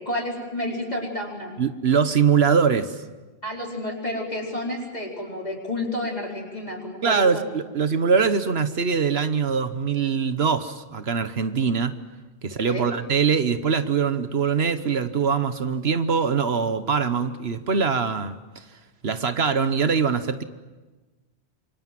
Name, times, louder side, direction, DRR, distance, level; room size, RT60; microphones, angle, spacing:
voice 1, 0.0-1.5 3.4-7.4 12.7-12.9, left 1 dB, 40° left, 0 dB, 4.7 m, -30 dB
voice 2, 1.6-3.0 7.0-11.9 12.4-18.6 19.0-20.4, right 6 dB, 70° right, 11 dB, 1.3 m, -23 dB
27.0 x 24.5 x 7.6 m, 1.2 s
omnidirectional pair, 1.1 m